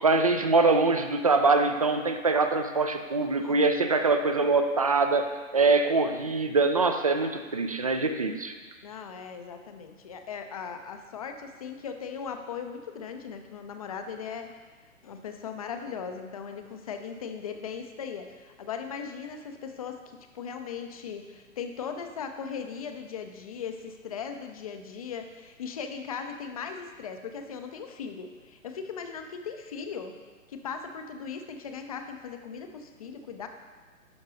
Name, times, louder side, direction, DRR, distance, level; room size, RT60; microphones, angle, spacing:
voice 1, 0.0-8.5, right 3 dB, 30° right, 7 dB, 0.4 m, -24 dB
voice 2, 8.8-14.5 15.0-30.1 30.5-33.5, left 6 dB, 30° left, 6 dB, 0.5 m, -38 dB
10.5 x 6.2 x 3.8 m, 1.4 s
figure-of-eight pair, 125°, 41 cm